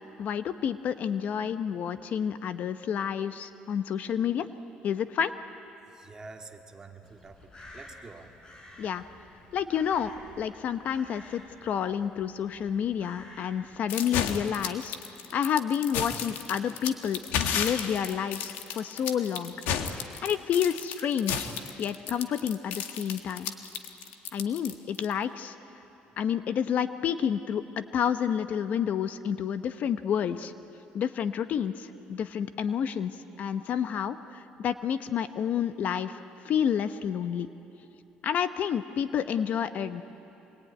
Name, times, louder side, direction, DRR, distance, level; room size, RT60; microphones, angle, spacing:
voice 1, 0.2-4.5 4.8-5.3 8.8-9.0 9.5-10.1 10.4-15.0 15.3-17.2 17.5-19.5 20.2-21.5 21.8-23.5 24.3-25.5 26.2-30.5 30.9-33.1 33.4-37.5 38.2-40.0, left 8 dB, 55° left, 11 dB, 0.9 m, -29 dB
voice 2, 5.9-8.3 37.9-38.0, right 3 dB, 20° right, 3 dB, 1.9 m, -48 dB
Crow, 7.0-13.9, left 1 dB, 25° left, 4.6 m, -51 dB
sound 1, 13.9-25.1, left 8 dB, 85° left, 1.6 m, -32 dB
25.0 x 21.0 x 9.4 m, 2.9 s
cardioid pair, 125°, 3 cm